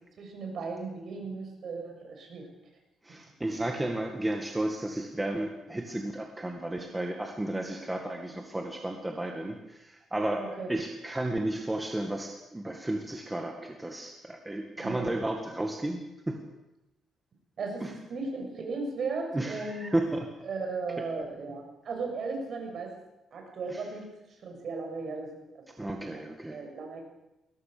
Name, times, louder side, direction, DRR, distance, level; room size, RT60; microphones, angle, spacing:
voice 1, 0.2-2.5 10.4-10.7 14.7-15.1 17.6-20.0 20.4-23.0 23.3-24.1 24.4-26.2 26.5-27.0, right 4 dB, 50° right, 2 dB, 7.0 m, -36 dB
voice 2, 3.0-16.4 17.8-17.9 19.3-20.1 23.7-23.8 25.8-26.6, right 1 dB, 10° right, 2 dB, 1.9 m, -33 dB
21.5 x 18.0 x 6.8 m, 0.93 s
cardioid pair, 140°, 0 cm